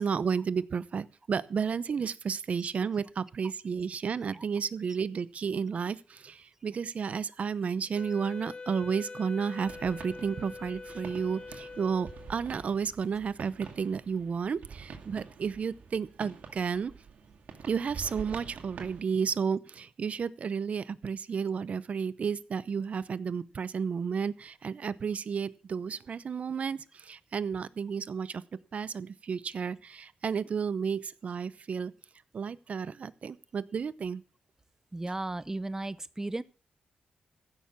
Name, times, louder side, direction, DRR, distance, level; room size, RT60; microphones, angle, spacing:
voice 1, 0.0-16.9 17.6-28.4 28.7-31.9 32.3-34.2, right 6 dB, 55° right, 0.7 m, -32 dB
Wind instrument woodwind instrument, 8.0-12.5, left 3 dB, 30° left, 0.6 m, -44 dB
sound 1, 9.6-19.0, right 6 dB, 70° right, 2.2 m, -47 dB
voice 2, 34.9-36.4, right 2 dB, 20° right, 0.8 m, -35 dB
15.5 x 6.7 x 7.1 m
cardioid pair, 75°, 3 cm